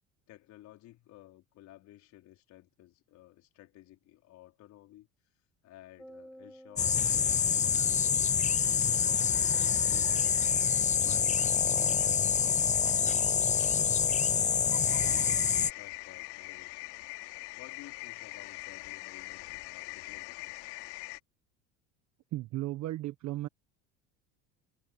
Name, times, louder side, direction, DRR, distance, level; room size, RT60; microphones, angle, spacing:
voice 1, 0.3-5.1 5.6-8.3 9.0-10.4 11.0-14.2 14.9-16.9 17.5-20.6, left 15 dB, 60° left, 4.7 m, -54 dB
sound 1, 6.0-8.5, equal, ahead, 5.3 m, -54 dB
sound 2, 6.8-15.7, left 7 dB, 25° left, 0.7 m, -26 dB
sound 3, 14.9-21.2, left 24 dB, 85° left, 3.3 m, -43 dB
voice 2, 22.3-23.5, right 16 dB, 60° right, 1.3 m, -35 dB
supercardioid pair, 110°, 32 cm